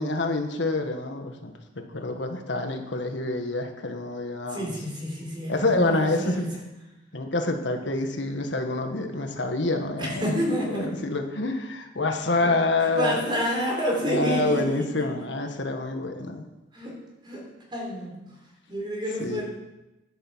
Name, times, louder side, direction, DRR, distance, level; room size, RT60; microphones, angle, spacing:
voice 1, 0.0-4.7 5.5-6.5 7.1-13.3 14.1-16.5 19.2-19.4, left 2 dB, 75° left, 4 dB, 1.5 m, -27 dB
voice 2, 4.5-6.5 10.0-11.0 12.4-12.5 12.8-15.1 16.7-17.0 17.2-18.2 18.7-19.4, equal, 25° right, -2 dB, 4.3 m, -29 dB
11.0 x 10.0 x 7.3 m, 1.0 s
head